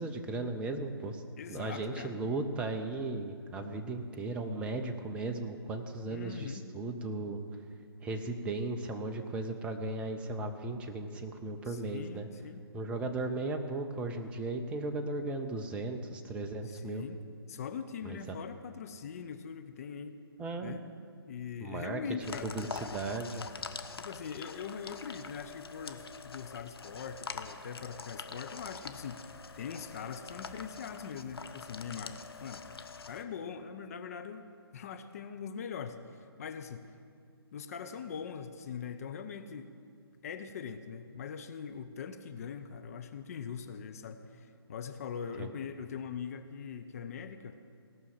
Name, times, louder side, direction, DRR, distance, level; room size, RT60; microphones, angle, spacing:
voice 1, 0.0-1.2 1.5-7.4 8.0-12.3 12.7-17.0 18.0-18.4 20.4-20.8 21.6-22.0 22.3-23.4 45.4-45.5, right 2 dB, 10° right, 5 dB, 0.6 m, -36 dB
voice 2, 1.4-2.2 6.1-6.7 11.6-12.7 16.6-17.2 17.5-20.2 20.6-20.8 21.3-22.6 24.0-32.6 33.1-34.4 34.7-36.9 37.5-39.7 40.2-47.6, left 6 dB, 35° left, 8 dB, 0.7 m, -42 dB
sound 1, 22.2-33.2, left 5 dB, 70° left, 0.8 m, -45 dB
18.0 x 6.2 x 7.5 m, 2.2 s
figure-of-eight pair, 140°, 13 cm